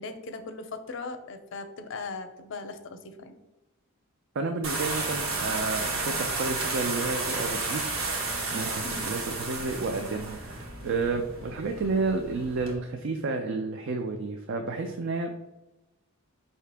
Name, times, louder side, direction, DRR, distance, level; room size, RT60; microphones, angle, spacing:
voice 1, 0.0-3.4 8.8-9.1 11.4-11.5, left 3 dB, 65° left, 8 dB, 0.5 m, -39 dB
voice 2, 4.4-7.8 8.2-15.4, right 3 dB, 60° right, 4 dB, 0.4 m, -31 dB
sound 1, 4.6-12.7, right 3 dB, 80° right, 1.0 m, -32 dB
4.8 x 2.8 x 3.3 m, 1.0 s
head